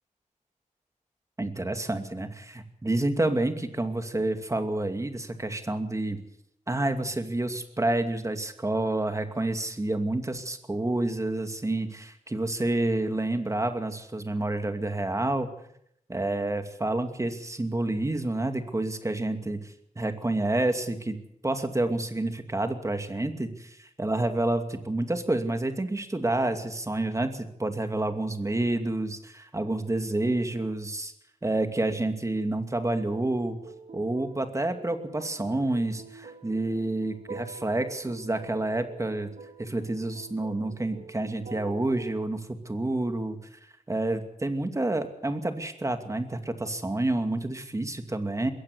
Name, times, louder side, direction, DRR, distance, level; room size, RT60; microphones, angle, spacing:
voice 1, 1.4-6.2 6.7-15.5 16.1-19.6 20.0-21.2 21.4-31.1 31.4-33.6 33.9-39.3 39.6-42.4 42.6-43.4 43.9-48.5, right 2 dB, 25° right, 7 dB, 2.5 m, -29 dB
sound 1, 33.1-42.1, right 3 dB, 75° right, 3.7 m, -46 dB
21.5 x 16.5 x 8.0 m, 0.72 s
wide cardioid pair, 105°, 14 cm